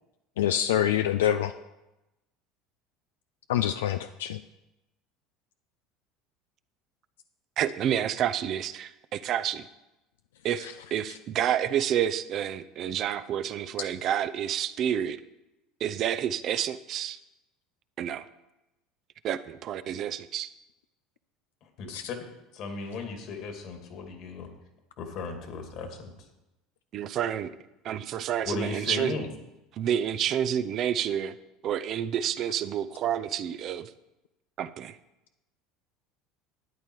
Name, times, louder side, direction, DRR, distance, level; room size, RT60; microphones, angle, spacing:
voice 1, 0.4-1.5 3.5-4.4 10.6-10.7 11.1-11.2 21.9-22.1, left 11 dB, 85° left, 9 dB, 0.4 m, -26 dB
voice 2, 7.6-9.7 10.4-15.2 15.8-17.2 18.0-18.2 19.2-20.5 26.9-27.5 27.8-29.3 29.8-31.3 31.6-33.9 34.6-35.0, right 10 dB, 50° right, 12 dB, 0.6 m, -29 dB
voice 3, 21.8-22.2 22.5-24.5 25.0-26.1 28.5-29.3, left 4 dB, 60° left, 5 dB, 2.4 m, -36 dB
12.5 x 9.0 x 4.7 m, 0.95 s
hypercardioid pair, 85°, 0 cm